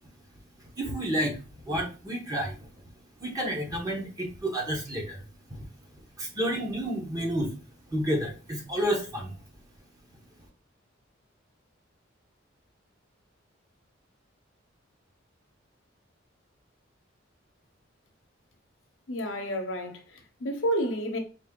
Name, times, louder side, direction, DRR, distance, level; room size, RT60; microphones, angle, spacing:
voice 1, 0.6-2.9 3.2-5.2 5.5-7.6 7.9-9.4, equal, 20° right, 1.2 m, -31 dB
voice 2, 19.1-21.2, equal, 75° left, 0.9 m, -30 dB
4.2 x 2.8 x 3.7 m
head